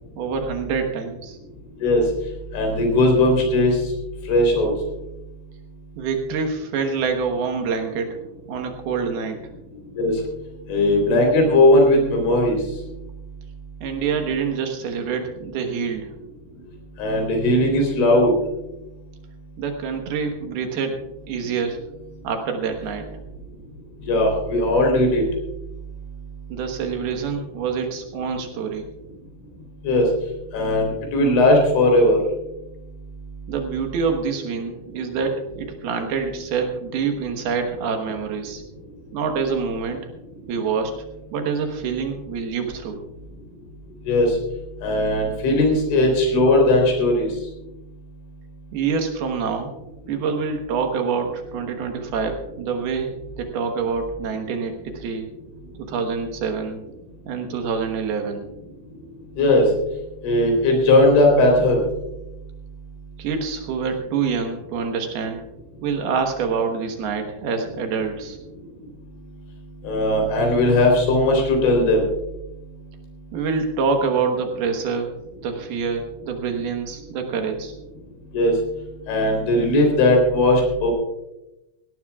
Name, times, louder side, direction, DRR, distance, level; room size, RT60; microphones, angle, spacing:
voice 1, 0.2-1.4 6.0-8.2 8.5-9.4 13.8-16.1 19.6-21.0 21.3-21.8 22.2-23.1 26.5-28.9 33.5-38.6 39.1-40.1 40.5-41.0 41.3-43.0 48.7-49.7 50.1-53.1 53.4-55.3 55.8-56.8 57.3-58.5 63.2-65.4 65.8-68.4 73.3-75.1 75.4-77.7, right 5 dB, 70° right, 4 dB, 2.9 m, -26 dB
voice 2, 2.5-3.8 4.3-4.7 9.9-10.2 10.7-12.6 17.0-18.3 24.0-25.2 29.8-30.1 30.5-32.2 44.1-44.4 44.8-47.3 59.4-59.7 60.2-61.9 69.8-72.1 78.3-78.5 79.1-80.9, left 1 dB, 85° left, 2 dB, 6.1 m, -18 dB
18.0 x 17.0 x 2.4 m, 0.93 s
omnidirectional pair, 5.1 m